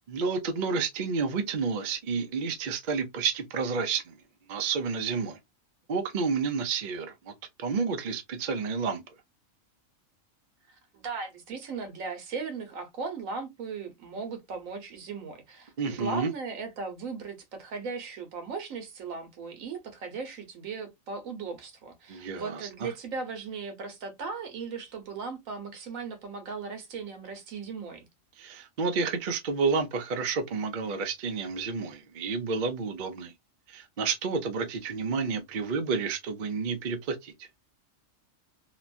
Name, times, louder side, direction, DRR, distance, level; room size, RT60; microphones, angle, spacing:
voice 1, 0.1-4.2 4.5-5.4 5.9-7.3 7.6-9.0 15.8-16.3 22.1-22.9 28.4-33.3 33.7-37.5, right 5 dB, 50° right, 0.6 m, -30 dB
voice 2, 10.9-28.1, right 4 dB, 85° right, 1.3 m, -37 dB
3.0 x 2.2 x 2.4 m
omnidirectional pair, 1.4 m